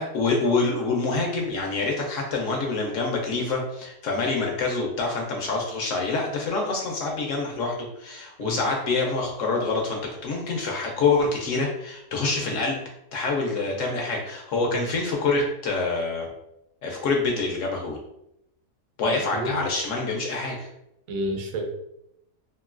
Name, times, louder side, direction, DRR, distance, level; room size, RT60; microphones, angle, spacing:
voice 1, 0.0-12.8 13.1-16.3 16.8-18.0 19.0-20.7, left 3 dB, 65° left, 0 dB, 0.8 m, -26 dB
voice 2, 19.1-19.6 21.1-21.7, right 1 dB, 70° right, 3 dB, 0.9 m, -30 dB
2.9 x 2.6 x 2.4 m, 0.82 s
omnidirectional pair, 1.7 m